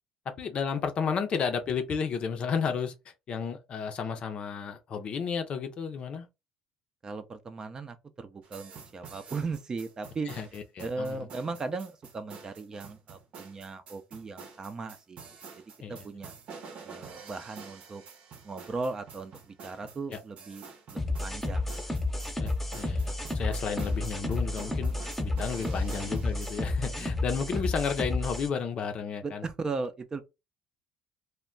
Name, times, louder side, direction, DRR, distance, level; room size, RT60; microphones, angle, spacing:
voice 1, 0.4-2.9 3.3-6.3 10.3-11.3 15.8-16.0 20.1-20.2 22.4-24.9 25.2-29.4, left 6 dB, 50° left, 0.6 m, -32 dB
voice 2, 7.0-15.2 15.6-15.7 15.9-16.3 16.8-18.0 18.4-21.7 25.3-25.8 27.3-27.6 29.2-30.2, right 3 dB, 30° right, 0.5 m, -37 dB
sound 1, 8.4-26.6, right 5 dB, 55° right, 0.8 m, -48 dB
sound 2, 21.0-28.5, left 2 dB, 10° left, 0.7 m, -31 dB
2.2 x 2.1 x 3.7 m
supercardioid pair, 85°, 2 cm